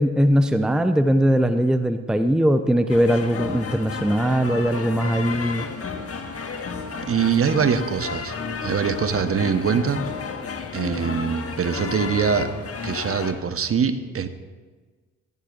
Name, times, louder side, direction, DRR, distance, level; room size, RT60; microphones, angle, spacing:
voice 1, 0.0-5.6, equal, ahead, 9 dB, 0.7 m, -20 dB
sound 1, 2.9-13.3, left 5 dB, 40° left, 1.5 m, -32 dB
voice 2, 7.1-8.3 8.6-10.0 10.7-12.5 12.8-14.3, right 6 dB, 40° right, 10 dB, 1.1 m, -23 dB
17.0 x 14.5 x 2.6 m, 1.4 s
hypercardioid pair, 50°, 36 cm